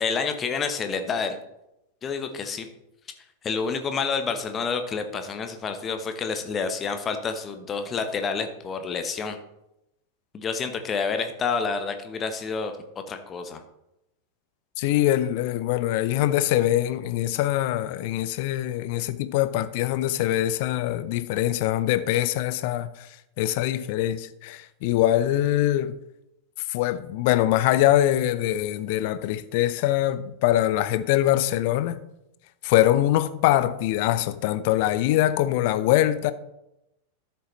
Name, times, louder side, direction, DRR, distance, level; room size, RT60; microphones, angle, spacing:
voice 1, 0.0-1.4 2.0-2.7 3.4-9.4 10.3-12.7 13.1-13.6, left 5 dB, 25° left, 1.1 m, -28 dB
voice 2, 14.8-23.1 23.4-26.0 26.7-32.0 32.6-36.3, left 13 dB, 50° left, 0.6 m, -23 dB
13.0 x 6.9 x 3.2 m
figure-of-eight pair, 90°, 0 cm